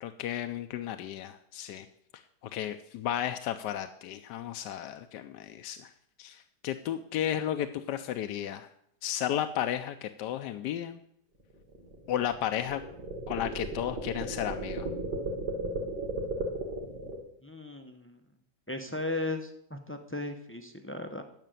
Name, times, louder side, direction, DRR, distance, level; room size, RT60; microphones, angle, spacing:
voice 1, 0.0-1.9 2.1-5.9 6.2-8.7 9.0-11.0 12.1-12.8 13.3-14.9, left 11 dB, 75° left, 8 dB, 1.2 m, -33 dB
sound 1, 11.4-17.2, right 2 dB, 65° right, 2.8 m, -35 dB
voice 2, 17.4-18.2 18.7-21.2, left 2 dB, 20° left, 6 dB, 0.3 m, -36 dB
11.0 x 6.6 x 9.1 m, 0.73 s
omnidirectional pair, 1.9 m